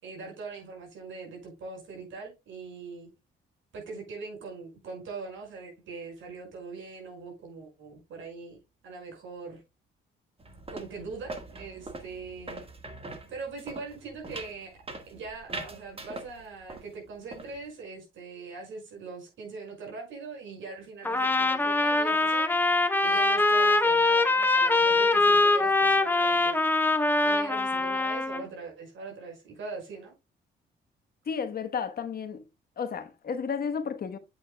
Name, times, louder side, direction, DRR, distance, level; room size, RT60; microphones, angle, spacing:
voice 1, 0.0-3.1 3.7-9.6 10.7-12.6 13.3-22.5 23.0-26.6 27.2-30.1, right 4 dB, 75° right, 5.6 m, -41 dB
sound 1, 10.4-16.9 17.1-17.6, right 2 dB, 30° right, 1.6 m, -42 dB
Trumpet, 21.0-28.4, left 2 dB, 10° left, 0.9 m, -23 dB
voice 2, 31.3-32.4 32.8-34.2, left 6 dB, 50° left, 1.2 m, -32 dB
8.3 x 8.2 x 2.2 m
cardioid pair, 90°, 20 cm